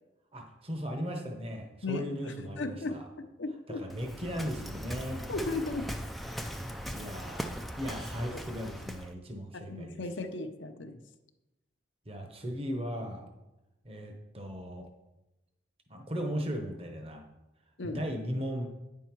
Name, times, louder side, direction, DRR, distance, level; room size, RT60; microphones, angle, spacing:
voice 1, 0.3-3.1 3.7-5.2 6.9-10.0 12.1-13.3 13.8-14.9 15.9-17.3 17.8-18.7, equal, 30° right, 3 dB, 0.9 m, -37 dB
voice 2, 1.8-3.9 5.3-5.9 9.7-11.0 17.8-18.0, left 3 dB, 75° left, 7 dB, 0.7 m, -36 dB
Waves surf, 3.9-9.1, equal, ahead, 0.3 m, -39 dB
9.4 x 5.6 x 4.6 m, 0.99 s
head